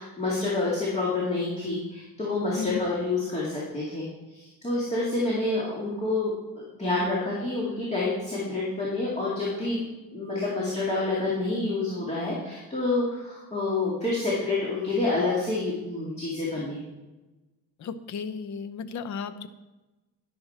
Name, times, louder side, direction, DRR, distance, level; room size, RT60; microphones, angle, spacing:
voice 1, 0.0-9.8 10.1-16.8, left 2 dB, 20° left, -6 dB, 2.4 m, -28 dB
voice 2, 17.8-19.5, left 5 dB, 55° left, 12 dB, 0.9 m, -34 dB
12.5 x 10.5 x 4.5 m, 1.1 s
cardioid pair, 165°, 33 cm